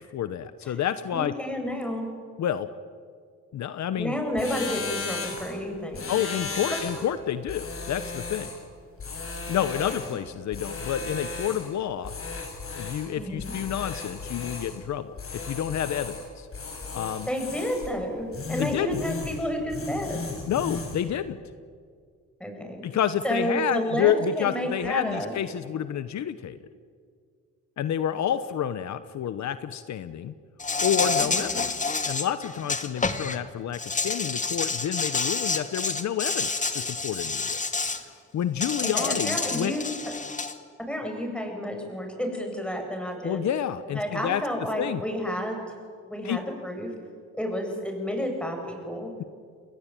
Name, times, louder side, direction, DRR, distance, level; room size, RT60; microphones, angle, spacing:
voice 1, 0.0-1.3 2.4-2.7 3.5-4.2 6.1-8.5 9.5-12.1 12.7-15.1 15.4-16.5 16.9-17.3 18.6-19.0 20.5-21.4 22.8-26.6 27.8-30.3 30.8-37.6 38.1-39.7 43.2-44.4 44.8-45.0 46.2-46.4, left 10 dB, 65° left, 12 dB, 1.2 m, -29 dB
voice 2, 1.1-2.1 4.0-6.2 13.1-13.5 17.3-20.2 22.4-22.8 23.2-25.3 31.3-31.6 38.8-39.9 40.9-43.4 43.9-45.6 46.1-46.9 47.3-49.1, equal, 5° left, 3 dB, 7.9 m, -30 dB
sound 1, 4.4-5.6 5.9-7.1 7.5-8.6 9.0-10.2 10.5-11.7 12.0-13.1 13.4-14.8 15.2-16.3 16.5-17.9 18.3-19.4 19.7-21.0, left 4 dB, 45° left, 7.1 m, -35 dB
Insect, 30.6-33.4 33.7-38.0 38.6-40.5, left 4 dB, 25° left, 2.3 m, -28 dB
30.0 x 21.5 x 9.2 m, 2.1 s
cardioid pair, 90°, 30 cm